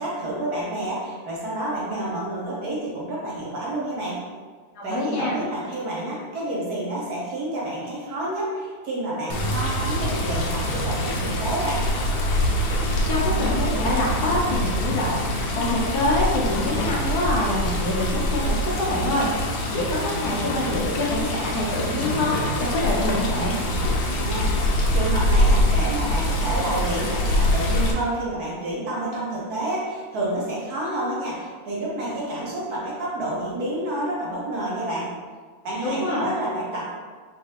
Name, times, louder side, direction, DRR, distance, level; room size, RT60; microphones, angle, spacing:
voice 1, 0.0-4.2 4.8-11.8 24.1-35.1 35.6-36.8, right 1 dB, 55° right, -5 dB, 1.1 m, -29 dB
voice 2, 4.8-5.4 13.0-23.6 35.8-36.3, left 1 dB, 60° left, -4 dB, 1.2 m, -26 dB
Water, 9.3-27.9, left 1 dB, 75° left, 1.4 m, -24 dB
4.7 x 3.0 x 2.9 m, 1.5 s
omnidirectional pair, 2.4 m